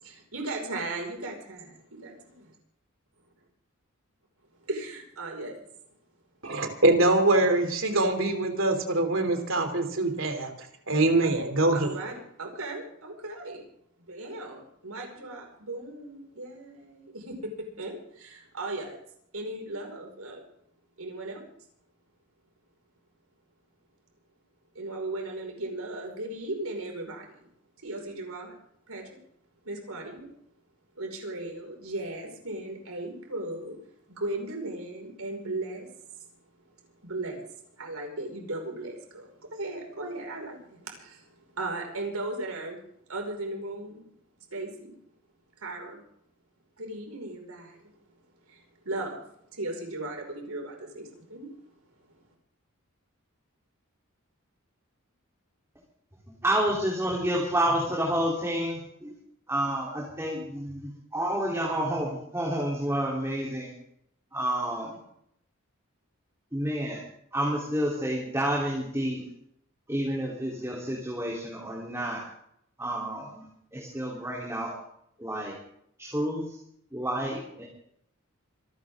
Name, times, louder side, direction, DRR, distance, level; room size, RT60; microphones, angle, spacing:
voice 1, 0.0-2.3 4.7-5.7 11.7-13.6 14.1-17.5 17.8-19.0 19.3-20.5 21.0-21.5 24.7-27.5 27.8-28.5 28.9-29.2 29.6-30.3 31.0-33.8 34.1-35.9 36.2-36.6 37.0-42.8 43.1-44.0 44.5-45.0 45.6-46.0 46.8-47.9 48.5-49.2 49.5-51.5 52.1-52.2, right 2 dB, 85° right, 2 dB, 5.5 m, -37 dB
voice 2, 6.4-10.5 10.9-11.9, right 2 dB, 60° right, 6 dB, 3.1 m, -23 dB
voice 3, 56.4-59.1 59.5-63.7 64.3-65.0 66.5-67.0 67.3-69.3 69.9-72.2 72.8-74.8 75.2-75.6 76.0-76.6 76.9-77.6, right 1 dB, 15° right, -4 dB, 3.5 m, -29 dB
26.5 x 12.5 x 3.7 m, 0.70 s
head